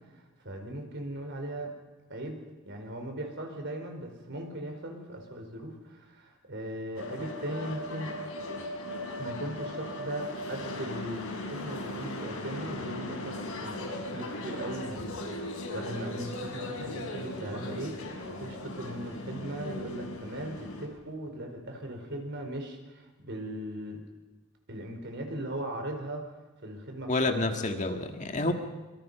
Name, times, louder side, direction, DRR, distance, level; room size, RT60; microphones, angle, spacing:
voice 1, 0.4-1.7 2.1-8.1 9.2-15.1 15.7-18.0 18.3-24.0 24.7-26.3 26.6-27.1 28.4-28.5, right 1 dB, 55° right, 4 dB, 4.8 m, -38 dB
sound 1, 7.0-20.9, left 1 dB, 70° left, 5.6 m, -38 dB
voice 2, 27.1-28.5, left 2 dB, 35° left, 5 dB, 1.8 m, -28 dB
26.5 x 24.5 x 5.7 m, 1.2 s
head